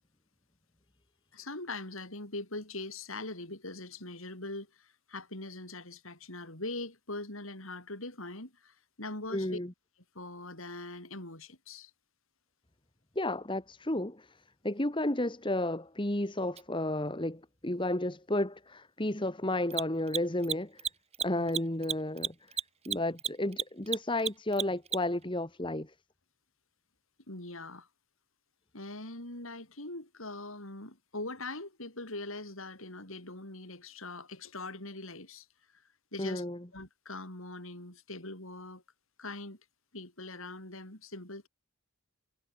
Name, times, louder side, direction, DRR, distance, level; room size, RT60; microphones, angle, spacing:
voice 1, 1.3-9.6 10.1-11.9 21.3-21.5 27.3-27.9 28.7-35.5 36.1-36.4 36.7-38.8 39.2-39.6 39.9-41.5, left 2 dB, 70° left, 7.9 m, -42 dB
voice 2, 9.3-9.7 13.2-14.3 14.6-20.9 21.2-22.3 22.9-25.9 36.2-36.6, left 1 dB, 20° left, 1.8 m, -32 dB
Mechanisms, 16.6-16.7 19.6-25.2, right 8 dB, 30° right, 1.0 m, -33 dB
head